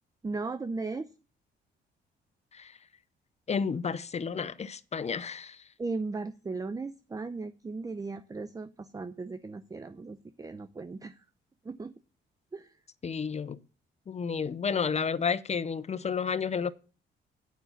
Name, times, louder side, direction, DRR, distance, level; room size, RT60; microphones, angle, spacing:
voice 1, 0.2-1.1 5.8-11.2 11.6-12.0 12.5-12.8, right 3 dB, 20° right, 0.6 m, -37 dB
voice 2, 3.5-5.7 13.0-13.6 14.1-16.7, left 6 dB, 35° left, 0.6 m, -31 dB
9.4 x 5.5 x 7.1 m
cardioid pair, 90°, 20 cm